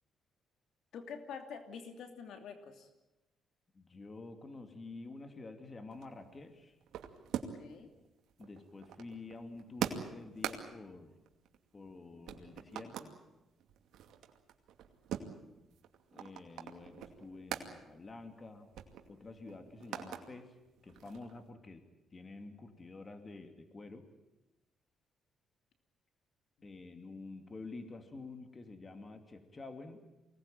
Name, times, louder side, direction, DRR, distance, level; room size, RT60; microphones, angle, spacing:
voice 1, 0.9-2.9 7.6-7.9, left 6 dB, 75° left, 6 dB, 2.9 m, -46 dB
voice 2, 3.7-6.8 8.4-11.2 11.7-13.2 16.1-18.7 19.1-20.5 20.8-21.8 22.1-24.1 26.6-30.0, left 3 dB, 30° left, 7 dB, 2.7 m, -49 dB
sound 1, 5.9-7.8 8.0-12.0 12.3-13.1 13.6-17.7 18.1-18.2 18.5-20.2 20.6-21.5, right 9 dB, 80° right, 2.4 m, -43 dB
24.0 x 19.0 x 9.1 m, 0.99 s
cardioid pair, 90°, 0 cm